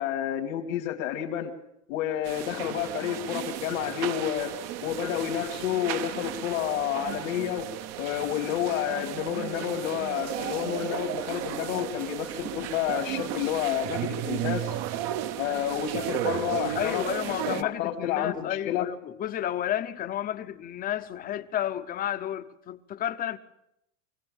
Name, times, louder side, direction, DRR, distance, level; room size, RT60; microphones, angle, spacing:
voice 1, 0.0-1.5 1.9-4.5 4.8-7.7 8.0-14.7 15.4-18.9, left 10 dB, 80° left, 2.4 m, -30 dB
sound 1, 2.2-17.6, right 12 dB, 40° right, 0.8 m, -34 dB
voice 2, 16.7-23.4, left 11 dB, 20° left, 0.8 m, -31 dB
24.0 x 16.5 x 8.9 m
supercardioid pair, 160°, 39 cm